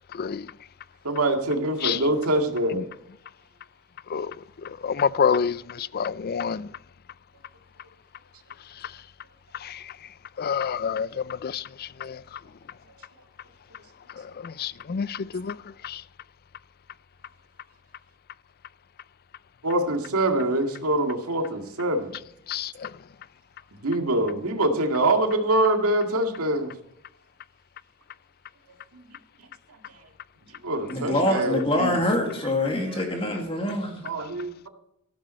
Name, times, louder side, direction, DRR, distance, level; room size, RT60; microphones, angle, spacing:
voice 1, 1.0-2.9 19.6-22.1 23.8-26.7 30.6-32.0 34.0-34.7, right 1 dB, 80° right, 2.1 m, -24 dB
voice 2, 4.8-6.7 9.6-9.7 10.4-11.1 11.4-12.2 14.4-15.6 15.8-16.0 22.5-22.9, left 7 dB, 45° left, 0.4 m, -27 dB
voice 3, 30.9-34.1, left 1 dB, 25° left, 2.1 m, -25 dB
14.0 x 12.5 x 4.4 m
head